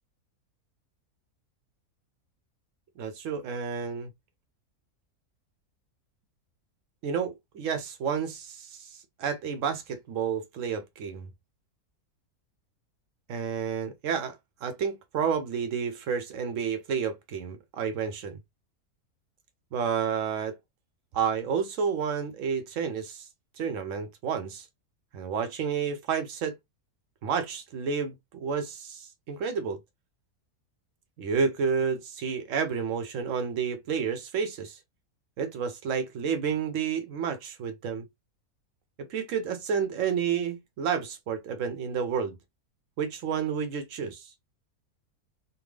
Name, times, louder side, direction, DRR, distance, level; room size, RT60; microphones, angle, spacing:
voice 1, 3.0-4.1 7.0-11.3 13.3-18.4 19.7-20.6 21.1-23.3 23.6-24.7 25.1-26.6 27.2-29.8 31.2-34.8 35.4-38.1 39.0-42.4 43.0-44.3, right 6 dB, 70° right, 0.8 m, -30 dB
3.4 x 2.2 x 3.2 m
omnidirectional pair, 1.6 m